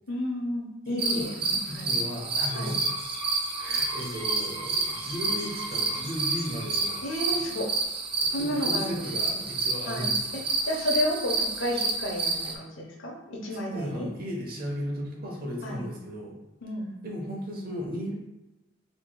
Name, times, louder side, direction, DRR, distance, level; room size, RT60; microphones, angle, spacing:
voice 1, 0.1-2.0 2.5-2.7 7.0-7.7 8.3-9.4 9.9-14.1 15.6-15.8 16.6-16.9, left 1 dB, 85° left, -1 dB, 0.9 m, -32 dB
voice 2, 0.8-1.3 1.7-3.0 3.6-7.0 8.2-10.4 13.7-16.4 17.0-18.1, equal, 50° right, -1 dB, 1.0 m, -35 dB
sound 1, 1.0-12.5, right 3 dB, 30° right, 0.5 m, -29 dB
sound 2, 2.2-7.6, right 1 dB, 60° left, 1.2 m, -41 dB
4.6 x 3.0 x 2.3 m, 1.0 s
head